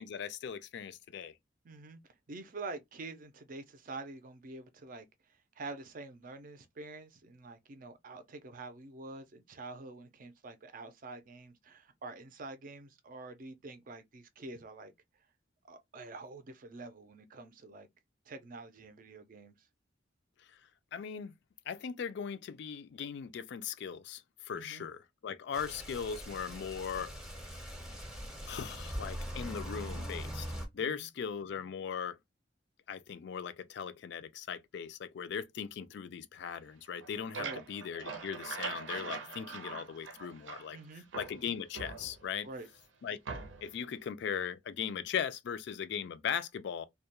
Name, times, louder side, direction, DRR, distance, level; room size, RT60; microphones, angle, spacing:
voice 1, 0.0-1.3 20.9-21.3 21.7-27.1 28.5-30.5 30.7-32.2 32.9-40.8 41.1-42.5 43.0-43.2 43.6-46.8, left 7 dB, 65° left, 0.3 m, -39 dB
voice 2, 1.6-2.0 2.3-5.1 5.6-14.9 15.6-17.9 18.3-19.6 24.5-24.9 30.8-31.1 37.4-37.6 40.7-41.0 42.4-42.7, right 3 dB, 45° right, 0.5 m, -46 dB
sound 1, 25.5-30.7, equal, 5° right, 0.6 m, -42 dB
sound 2, 36.9-40.8 41.1-42.5 43.3-43.8, right 4 dB, 90° right, 0.6 m, -42 dB
2.2 x 2.1 x 2.8 m
head